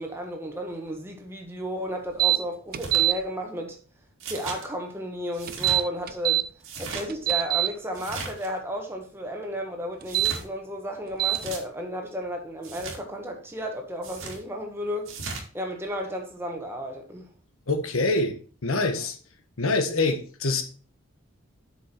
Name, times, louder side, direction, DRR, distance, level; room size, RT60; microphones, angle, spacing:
voice 1, 0.0-3.8 4.2-6.4 6.8-15.1 15.5-17.3, equal, 10° right, 1.4 m, -33 dB
sound 1, 2.2-2.4 2.7-3.1 5.5-6.4 6.9-7.7 10.0-10.3 11.2-11.4, right 15 dB, 40° right, 0.5 m, -22 dB
sound 2, 2.7-3.0 4.2-4.6 5.3-5.8 6.6-7.1 7.9-8.5 10.0-10.4 11.2-11.6 12.6-13.0 14.0-14.4 15.0-15.4, right 4 dB, 70° right, 2.2 m, -37 dB
voice 2, 17.7-18.3 18.6-19.2 19.6-20.6, left 2 dB, 80° left, 1.3 m, -25 dB
8.0 x 6.0 x 4.5 m
head